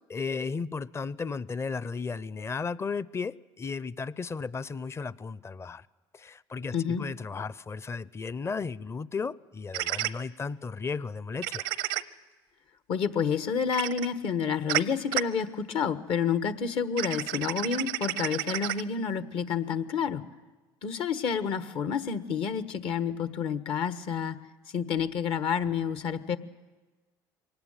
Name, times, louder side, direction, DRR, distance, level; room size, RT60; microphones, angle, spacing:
voice 1, 0.1-5.9 6.1-11.7, left 4 dB, 25° left, 0.7 m, -34 dB
voice 2, 6.7-7.0 12.9-20.2 20.8-24.4 24.7-26.4, left 7 dB, 60° left, 1.4 m, -29 dB
sound 1, 9.7-10.1 11.4-12.0 13.7-14.1 14.7-14.8 15.1-15.2 17.0-18.8, right 16 dB, 85° right, 0.7 m, -30 dB
23.5 x 18.5 x 9.1 m
supercardioid pair, 75°, 10 cm